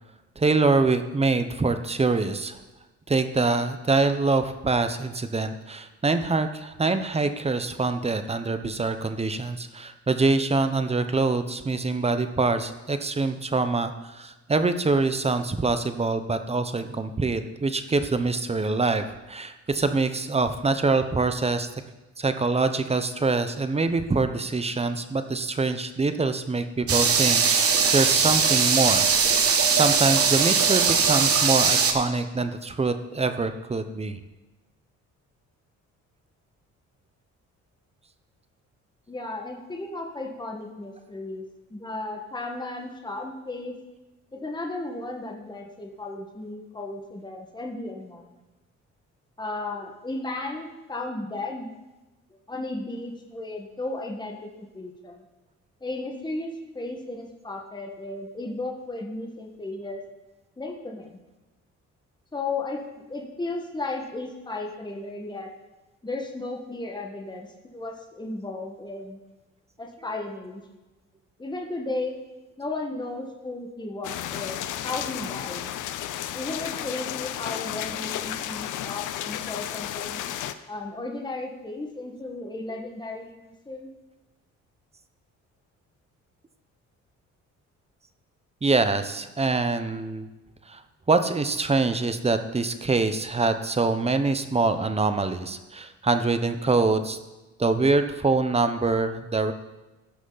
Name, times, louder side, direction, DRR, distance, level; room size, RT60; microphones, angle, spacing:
voice 1, 0.4-2.6 3.1-21.7 22.2-34.2 88.6-90.3 90.7-90.8 91.1-97.2 97.6-99.5, right 3 dB, 20° right, 9 dB, 0.8 m, -25 dB
sound 1, 26.9-31.9, right 6 dB, 50° right, 1.2 m, -20 dB
voice 2, 39.1-41.4 41.7-43.7 44.3-48.3 49.4-51.7 52.5-55.2 55.8-60.0 60.6-61.2 62.3-62.8 63.1-65.5 66.0-67.5 67.7-69.2 69.8-70.6 71.4-72.2 72.6-75.7 76.3-80.2 80.7-83.9, left 2 dB, 15° left, 1 dB, 1.5 m, -34 dB
sound 2, 74.0-80.5, left 11 dB, 85° left, 0.6 m, -33 dB
15.5 x 6.1 x 4.0 m, 1.1 s
cardioid pair, 90°, 30 cm